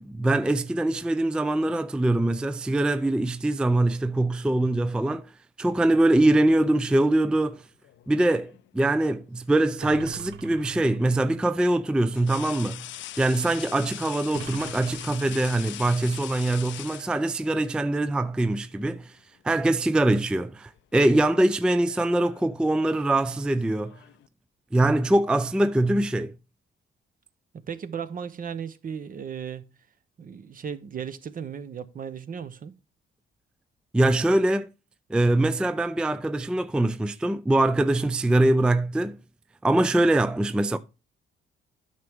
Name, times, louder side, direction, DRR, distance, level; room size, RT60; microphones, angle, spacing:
voice 1, 0.0-5.3 5.6-7.6 8.1-12.9 13.2-19.2 19.4-24.0 24.7-26.3 33.9-34.7 35.1-39.2 39.6-40.8, right 1 dB, 5° right, 0.3 m, -23 dB
sound 1, 7.8-8.7 10.4-10.6 12.1-17.6 18.8-19.0 19.4-20.2 20.4-20.8 21.7-24.3, left 14 dB, 70° left, 0.4 m, -42 dB
sound 2, 9.8-11.3 14.3-15.8, right 8 dB, 80° right, 0.8 m, -42 dB
voice 2, 27.7-29.6 30.2-32.7, right 7 dB, 45° right, 0.8 m, -35 dB
9.2 x 6.0 x 3.5 m
cardioid pair, 90°, 20 cm